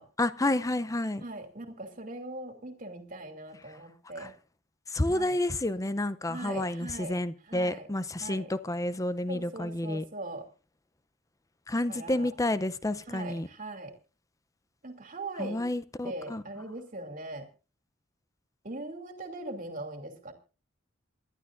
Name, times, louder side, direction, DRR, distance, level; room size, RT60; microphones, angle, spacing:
voice 1, 0.2-1.2 4.2-4.3 4.9-10.0 11.7-13.5 15.4-16.4, left 1 dB, 15° left, 0.6 m, -30 dB
voice 2, 1.2-4.3 5.1-5.4 6.3-7.2 7.5-7.9 8.2-8.5 9.3-10.5 11.9-12.3 13.1-13.9 14.8-15.6 16.0-17.5 18.6-20.3, right 2 dB, 40° right, 2.7 m, -40 dB
28.0 x 12.0 x 2.6 m
head